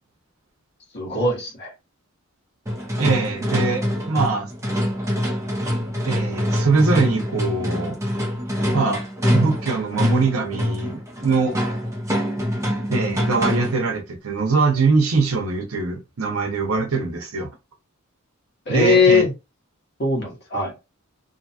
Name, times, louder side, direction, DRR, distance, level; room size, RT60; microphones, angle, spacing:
voice 1, 0.9-1.7 18.7-19.3 20.0-20.7, left 4 dB, 55° left, 1.3 m, -19 dB
sound 1, 2.7-13.9, equal, 15° right, 0.7 m, -25 dB
voice 2, 3.0-4.5 6.0-8.0 8.7-9.0 9.3-11.6 12.9-17.5 18.7-19.2, right 4 dB, 80° right, 0.7 m, -22 dB
2.7 x 2.3 x 2.7 m
head